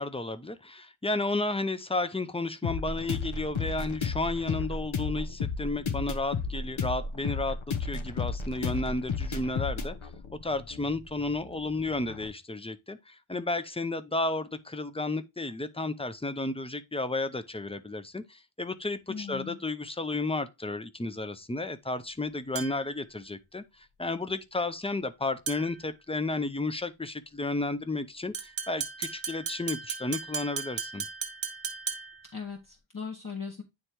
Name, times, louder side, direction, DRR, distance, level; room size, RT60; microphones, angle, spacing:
voice 1, 0.0-10.0 10.4-31.0, left 2 dB, 10° left, 0.6 m, -32 dB
sound 1, 2.6-12.3, left 4 dB, 70° left, 1.0 m, -33 dB
voice 2, 19.1-19.6 32.3-33.6, left 6 dB, 40° left, 1.0 m, -38 dB
sound 2, 22.6-23.0 25.5-25.9 28.3-32.3, right 6 dB, 70° right, 1.3 m, -36 dB
9.7 x 3.3 x 2.9 m
wide cardioid pair, 80°, 50 cm